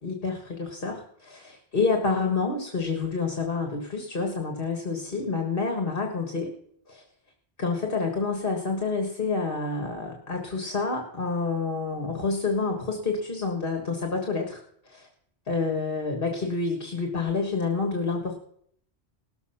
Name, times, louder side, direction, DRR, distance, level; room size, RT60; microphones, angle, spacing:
voice 1, 0.0-6.5 6.9-7.0 7.6-14.6 14.9-15.1 15.5-18.3, left 4 dB, 55° left, 3 dB, 1.8 m, -28 dB
18.5 x 7.2 x 5.7 m, 0.68 s
omnidirectional pair, 1.1 m